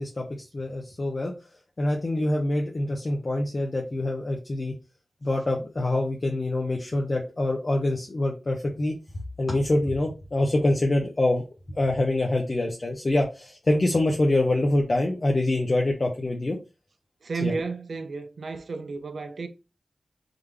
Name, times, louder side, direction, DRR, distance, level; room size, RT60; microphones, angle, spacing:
voice 1, 0.0-1.3 1.8-4.7 5.2-9.0 9.4-11.4 11.8-16.6 17.4-17.5, left 1 dB, 45° left, 0.9 m, -25 dB
voice 2, 17.2-19.5, right 4 dB, 80° right, 0.6 m, -33 dB
3.9 x 3.4 x 3.4 m
wide cardioid pair, 75°, 0 cm